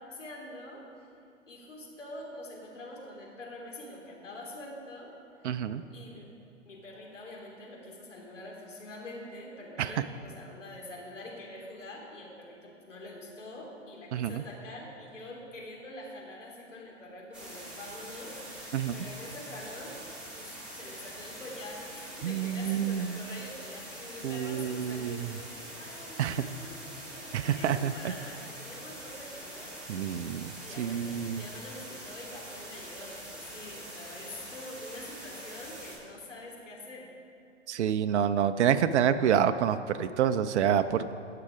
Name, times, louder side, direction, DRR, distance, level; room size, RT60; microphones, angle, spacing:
voice 1, 0.1-1.1 1.5-5.1 5.9-6.3 6.6-18.4 18.9-20.0 20.3-30.1 30.6-37.1, left 1 dB, 85° left, -2 dB, 3.2 m, -45 dB
voice 2, 5.4-5.8 9.8-9.9 14.1-14.4 18.7-18.9 22.2-23.2 24.2-25.3 26.2-26.4 27.3-27.9 29.9-30.5 30.8-31.4 37.7-41.1, right 9 dB, 65° right, 10 dB, 0.6 m, -27 dB
sound 1, 17.3-36.0, right 1 dB, ahead, 3.4 m, -44 dB
18.0 x 6.8 x 5.0 m, 2.4 s
hypercardioid pair, 120°, 36 cm